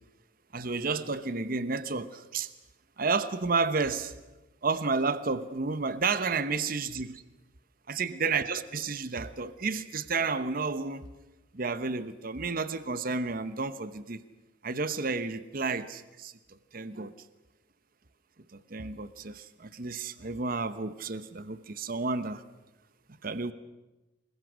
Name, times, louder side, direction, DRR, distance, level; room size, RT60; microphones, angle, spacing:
voice 1, 0.5-2.5 3.0-4.1 4.6-7.2 7.9-11.1 11.5-14.2 14.6-17.1 18.5-22.4 23.2-23.5, right 4 dB, 50° right, 0.9 m, -31 dB
25.5 x 21.5 x 6.3 m
head